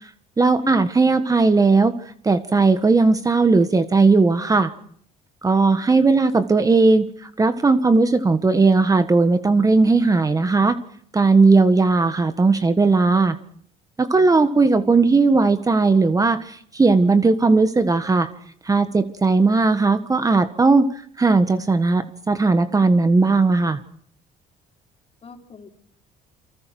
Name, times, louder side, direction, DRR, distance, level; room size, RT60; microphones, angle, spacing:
voice 1, 0.4-1.9 2.2-4.7 5.4-7.1 7.4-10.8 11.1-13.4 14.0-18.3 18.6-20.9 21.2-23.8, right 3 dB, 20° right, 10 dB, 1.5 m, -17 dB
voice 2, 25.2-25.8, left 4 dB, 35° left, 4 dB, 4.5 m, -40 dB
29.0 x 23.5 x 6.2 m, 0.62 s
cardioid pair, 110°, 17 cm